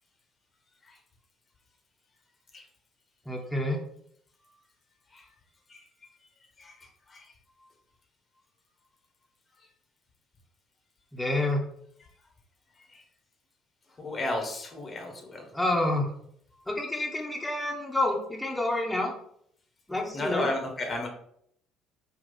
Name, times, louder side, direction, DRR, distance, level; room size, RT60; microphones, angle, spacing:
voice 1, 3.3-3.8 11.1-11.6 15.5-16.1 16.7-19.1 19.9-20.5, left 2 dB, 10° left, -1 dB, 0.8 m, -28 dB
voice 2, 6.6-7.3 12.9-13.0 14.0-15.5 20.1-21.1, left 2 dB, 35° left, 2 dB, 0.9 m, -33 dB
3.8 x 2.3 x 3.9 m, 0.69 s
hypercardioid pair, 55°, 0 cm